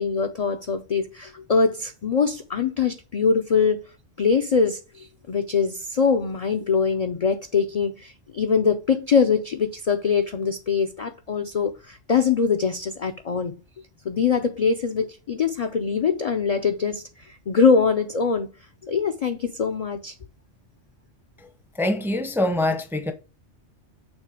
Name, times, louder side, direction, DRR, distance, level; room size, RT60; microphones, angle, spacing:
voice 1, 0.0-3.8 4.2-13.5 14.0-18.5 18.8-20.1, left 5 dB, 55° left, 0.4 m, -23 dB
voice 2, 21.7-23.1, left 1 dB, 5° right, 0.5 m, -24 dB
6.3 x 3.7 x 4.9 m
omnidirectional pair, 1.3 m